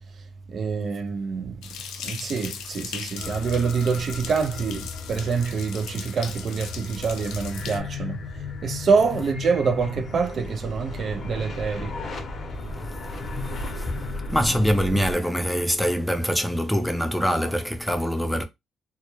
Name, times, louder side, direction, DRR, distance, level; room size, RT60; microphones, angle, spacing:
voice 1, 0.5-1.6 2.0-8.2 8.6-11.9, right 5 dB, 55° right, 0.3 m, -26 dB
sound 1, 1.6-7.8, left 8 dB, 85° left, 0.3 m, -38 dB
sound 2, 3.2-15.2, left 3 dB, 50° left, 0.7 m, -35 dB
voice 2, 12.7-13.2 13.7-13.9 14.3-18.4, equal, 5° left, 0.5 m, -24 dB
2.1 x 2.1 x 3.0 m
cardioid pair, 90°, 0 cm